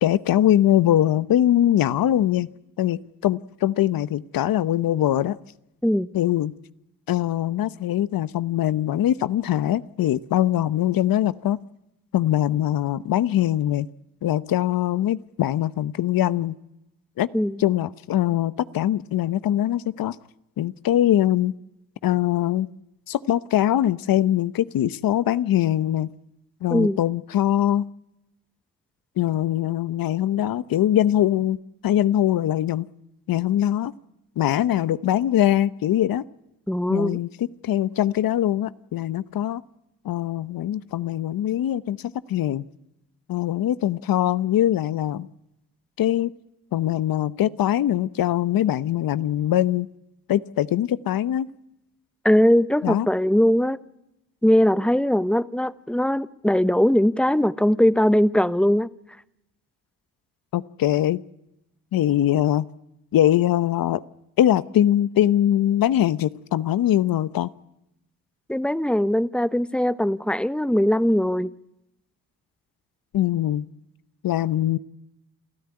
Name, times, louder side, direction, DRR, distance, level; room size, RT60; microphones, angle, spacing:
voice 1, 0.0-2.5 2.8-5.4 6.1-6.5 7.1-11.6 12.1-13.9 14.2-16.6 17.2-17.3 17.6-20.2 20.6-21.5 22.0-22.7 23.1-26.1 26.6-27.8 29.2-31.6 31.8-32.9 33.3-33.9 34.4-36.2 36.9-39.6 40.0-42.0 42.3-42.6 43.3-45.3 46.0-46.3 46.7-49.9 50.3-51.5 52.8-53.1 60.5-61.2 61.9-62.7 63.1-64.0 64.4-67.5 73.1-73.7 74.2-74.8, left 12 dB, 65° left, 0.9 m, -22 dB
voice 2, 36.7-37.2 52.2-53.8 54.4-58.9 68.5-71.5, equal, 5° left, 0.9 m, -20 dB
28.0 x 14.0 x 9.8 m
cardioid pair, 80°, 37 cm